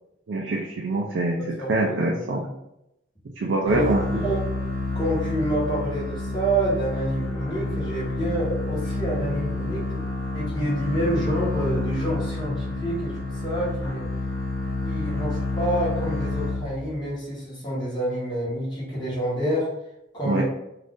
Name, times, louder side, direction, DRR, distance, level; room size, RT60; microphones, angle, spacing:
voice 1, 0.3-2.4 3.4-4.2 20.2-20.4, right 2 dB, 65° right, 0 dB, 0.4 m, -25 dB
voice 2, 1.6-2.5 3.6-4.4 4.9-10.0 10.3-14.1 14.8-19.7 20.1-20.4, right 1 dB, 20° left, -7 dB, 1.1 m, -28 dB
sound 1, 3.6-17.1, left 2 dB, 80° left, 0.7 m, -29 dB
2.5 x 2.4 x 3.5 m, 0.85 s
head